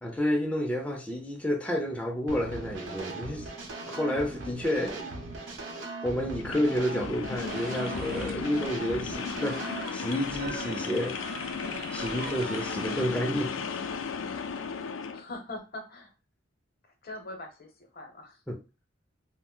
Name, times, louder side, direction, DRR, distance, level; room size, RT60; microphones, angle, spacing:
voice 1, 0.0-3.5 3.9-5.1 6.0-11.2 11.9-13.6 18.5-18.6, equal, 5° left, 0.4 m, -30 dB
sound 1, 2.3-9.8, right 2 dB, 85° right, 0.7 m, -39 dB
sound 2, 6.4-15.2, left 6 dB, 85° left, 0.3 m, -35 dB
sound 3, 7.5-13.1, right 3 dB, 50° right, 0.5 m, -42 dB
voice 2, 15.1-16.1 17.0-18.4, left 2 dB, 55° left, 0.7 m, -42 dB
2.5 x 2.0 x 3.7 m
head